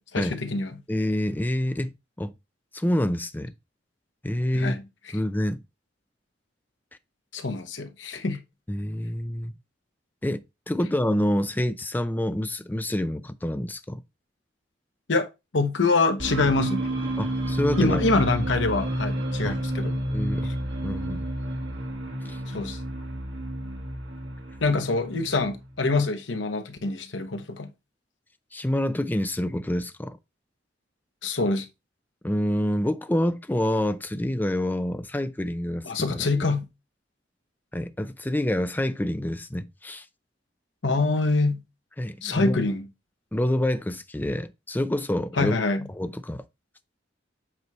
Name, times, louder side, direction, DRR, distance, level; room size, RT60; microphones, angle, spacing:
voice 1, 0.0-0.8 4.5-4.8 7.3-8.4 15.1-16.9 17.8-20.0 20.4-20.5 22.5-22.8 24.6-27.7 31.2-31.7 35.8-36.7 40.8-41.6 42.2-42.9 45.4-45.9, left 3 dB, 80° left, 1.1 m, -25 dB
voice 2, 0.9-2.3 2.7-3.5 4.2-4.7 5.1-5.6 8.7-9.5 10.2-14.0 17.2-18.1 19.4-19.6 20.1-20.5 20.8-21.3 22.3-22.4 28.5-30.2 32.2-36.3 37.7-40.1 42.0-42.6 43.3-45.6 45.9-46.4, left 1 dB, 10° left, 0.5 m, -27 dB
sound 1, 16.2-25.8, right 1 dB, 70° right, 1.7 m, -30 dB
8.0 x 4.6 x 3.1 m
head